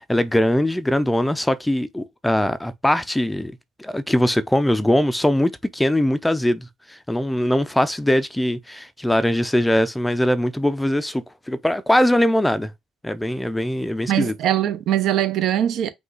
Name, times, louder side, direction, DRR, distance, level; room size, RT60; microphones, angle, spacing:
voice 1, 0.0-3.5 3.8-12.7 13.0-14.3, left 1 dB, 5° left, 0.5 m, -21 dB
voice 2, 14.1-15.9, right 11 dB, 65° right, 0.8 m, -21 dB
5.2 x 2.4 x 3.8 m
cardioid pair, 100°, 0 cm